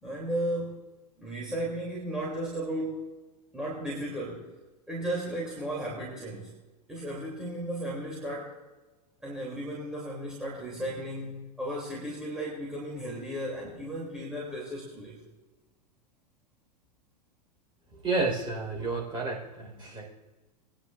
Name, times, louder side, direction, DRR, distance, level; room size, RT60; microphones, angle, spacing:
voice 1, 0.0-0.8 1.2-3.1 3.5-4.5 4.9-6.5 6.9-8.6 9.2-15.2, right 1 dB, 5° right, -6 dB, 3.0 m, -35 dB
voice 2, 18.0-20.0, right 3 dB, 25° right, -2 dB, 4.7 m, -30 dB
22.5 x 10.0 x 2.6 m, 1.2 s
figure-of-eight pair, 95°, 21 cm